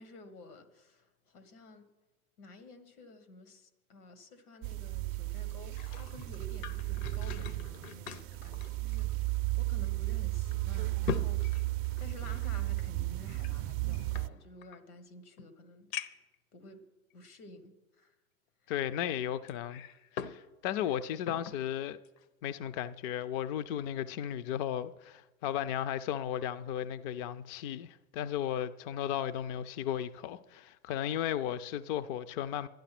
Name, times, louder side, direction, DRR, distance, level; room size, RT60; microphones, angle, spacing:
voice 1, 0.0-1.9 2.4-11.4 12.0-15.9 16.5-16.8 17.1-18.1, left 2 dB, 80° left, 1.8 m, -52 dB
sound 1, 4.6-14.3, right 20 dB, 35° right, 0.4 m, -34 dB
sound 2, 5.5-9.5 9.8-9.9 10.5-12.5 13.4-14.8 15.4-15.5 15.9-16.4 17.1-17.2 19.5-20.4 20.8-21.6 22.1-22.3, left 7 dB, 65° left, 0.9 m, -42 dB
voice 2, 18.7-19.8 20.1-22.0 22.4-32.7, left 10 dB, 40° left, 0.4 m, -35 dB
11.5 x 10.5 x 6.0 m
hypercardioid pair, 110°, 44 cm